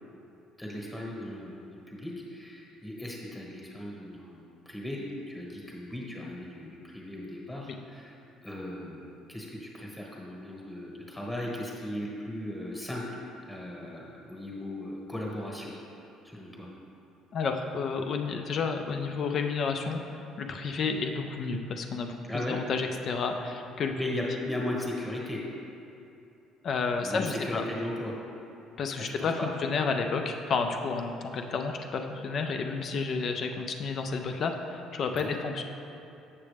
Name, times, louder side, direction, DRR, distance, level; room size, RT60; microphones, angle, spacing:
voice 1, 0.6-13.2 13.5-15.7 16.2-16.7 22.2-22.6 24.0-25.4 27.0-28.2 29.0-29.5 35.2-35.4, left 1 dB, 5° left, -3 dB, 1.1 m, -37 dB
voice 2, 17.3-22.2 22.5-23.9 26.6-27.6 28.8-35.6, left 4 dB, 35° left, 5 dB, 0.4 m, -31 dB
7.4 x 7.0 x 3.4 m, 2.8 s
cardioid pair, 170°, 0 cm